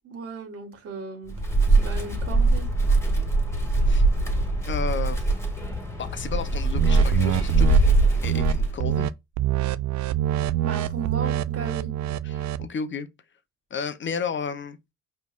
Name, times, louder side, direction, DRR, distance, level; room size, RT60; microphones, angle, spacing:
voice 1, 0.0-1.4 1.7-2.7 10.6-11.9, right 4 dB, 50° right, 1.8 m, -36 dB
Wind, 1.3-9.0, right 2 dB, 10° left, 1.9 m, -22 dB
voice 2, 4.7-5.2 6.0-8.0 8.2-9.1 12.2-13.1 13.7-14.8, left 6 dB, 40° left, 0.7 m, -32 dB
sound 1, 6.7-7.8 8.2-8.5 8.8-9.1 9.4-12.7, right 12 dB, 70° right, 0.5 m, -26 dB
5.2 x 3.3 x 2.5 m
cardioid pair, 90°, 30 cm